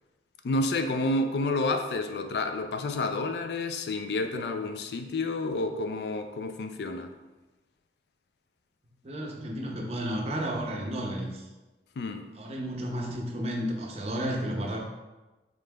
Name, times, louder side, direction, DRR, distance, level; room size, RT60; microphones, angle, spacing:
voice 1, 0.4-7.1 12.0-12.3, left 2 dB, 65° left, 7 dB, 0.3 m, -30 dB
voice 2, 9.0-11.5 12.4-14.8, equal, 35° right, 0 dB, 0.6 m, -32 dB
5.1 x 3.7 x 2.2 m, 1.1 s
head